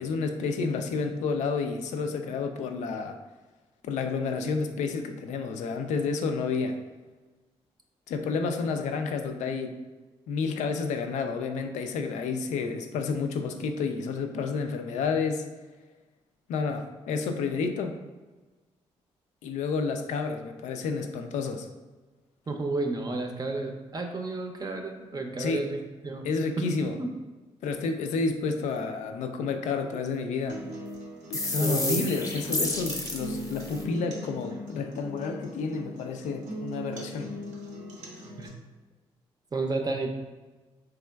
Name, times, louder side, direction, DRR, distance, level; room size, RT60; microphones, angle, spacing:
voice 1, 0.0-3.2 3.8-6.8 8.1-9.8 10.3-15.4 16.5-17.9 19.4-21.7 25.4-25.7 26.2-27.0 27.6-30.6 31.3-37.3, left 4 dB, 75° left, 6 dB, 0.4 m, -30 dB
voice 2, 22.5-26.3 26.6-26.7 27.0-27.1 31.6-32.1 38.4-38.5 39.5-40.1, right 3 dB, 30° right, 3 dB, 0.5 m, -31 dB
sound 1, 30.5-38.5, equal, 80° right, 0.6 m, -40 dB
sound 2, 31.3-33.8, left 2 dB, 25° left, 0.7 m, -31 dB
3.4 x 2.9 x 2.2 m, 1.2 s
supercardioid pair, 50°, 13 cm